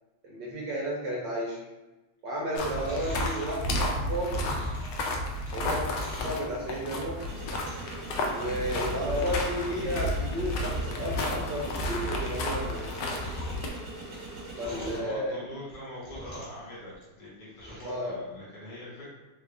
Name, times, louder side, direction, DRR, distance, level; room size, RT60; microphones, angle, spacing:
voice 1, 0.2-1.6 2.2-4.4 5.5-7.2 8.3-12.9 14.6-15.4 17.8-18.2, equal, 70° right, -4 dB, 1.2 m, -32 dB
Chewing mastication, 2.5-6.4 6.9-8.0 8.2-8.6 8.9-9.5 9.7-9.8 10.3-10.4 10.6-11.0 11.4-12.5 12.7-15.1 15.6-16.6 16.9-18.0 18.4-18.5, equal, 15° left, 0.9 m, -45 dB
sound 1, 2.6-13.7, left 1 dB, 75° left, 1.1 m, -32 dB
sound 2, 7.2-15.0, right 2 dB, 50° right, 1.5 m, -42 dB
voice 2, 14.2-19.1, left 1 dB, 60° left, -8 dB, 1.8 m, -43 dB
3.5 x 2.4 x 3.3 m, 1.1 s
omnidirectional pair, 2.4 m